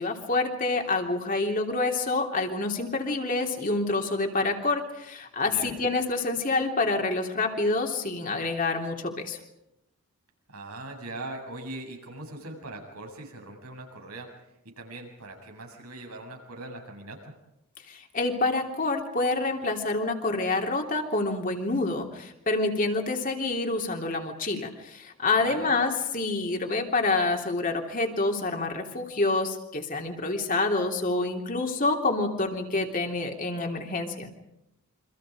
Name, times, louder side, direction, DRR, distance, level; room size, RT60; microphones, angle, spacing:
voice 1, 0.0-9.4 17.9-34.3, left 3 dB, 35° left, 2 dB, 3.2 m, -27 dB
voice 2, 5.5-5.8 10.5-14.3 14.6-17.3 25.4-25.7, right 2 dB, 85° right, 2 dB, 7.8 m, -41 dB
28.5 x 25.5 x 5.1 m, 0.84 s
head